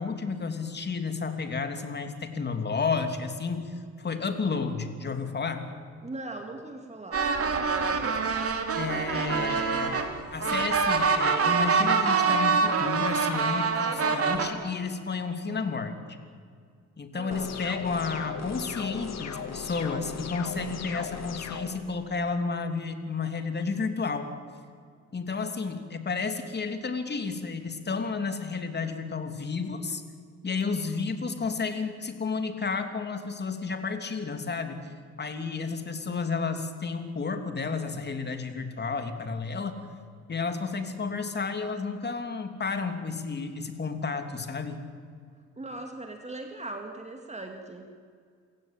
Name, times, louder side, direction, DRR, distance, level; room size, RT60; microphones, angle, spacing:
voice 1, 0.0-5.7 8.8-15.9 17.0-24.3 25.1-30.0 30.4-34.8 35.2-39.7 40.3-44.8, left 4 dB, 35° left, 7 dB, 2.9 m, -31 dB
voice 2, 6.0-7.3 17.1-17.5 45.6-47.9, right 2 dB, 20° right, 4 dB, 2.2 m, -39 dB
sound 1, 7.1-14.5, right 5 dB, 50° right, 2.8 m, -25 dB
sound 2, 17.3-21.7, left 7 dB, 60° left, 2.4 m, -37 dB
27.5 x 16.5 x 9.0 m, 2.1 s
cardioid pair, 90°, 30 cm